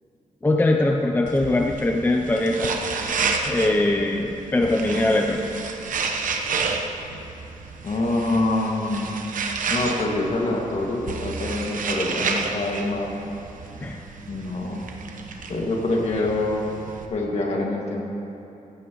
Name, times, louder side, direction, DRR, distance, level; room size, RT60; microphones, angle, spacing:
voice 1, 0.4-2.7 3.5-5.4 13.8-14.0, left 2 dB, 15° left, 2 dB, 0.6 m, -21 dB
sound 1, 1.3-17.1, right 4 dB, 75° right, 1.1 m, -31 dB
voice 2, 7.8-9.1 9.7-13.1 14.3-14.9 15.5-16.8 17.1-18.0, left 2 dB, 50° left, -1 dB, 2.1 m, -25 dB
17.0 x 15.0 x 3.1 m, 2.9 s
wide cardioid pair, 155°, 14 cm